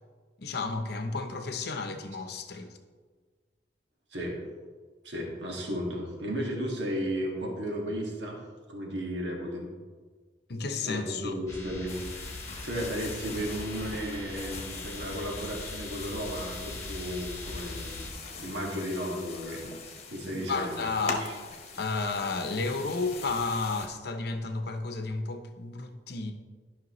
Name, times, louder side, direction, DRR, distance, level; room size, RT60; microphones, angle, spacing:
voice 1, 0.4-2.8 10.5-11.3 19.6-19.8 20.4-21.5 21.8-26.3, left 3 dB, 65° left, 0.8 m, -32 dB
voice 2, 5.0-8.4 8.7-9.7 10.8-18.1 18.4-19.7 20.1-20.9 21.2-21.3, equal, 75° right, 1.9 m, -34 dB
sound 1, 11.5-18.1, left 2 dB, 20° left, 1.6 m, -41 dB
sound 2, 11.9-23.9, left 4 dB, 40° left, 1.1 m, -42 dB
12.5 x 5.8 x 3.1 m
head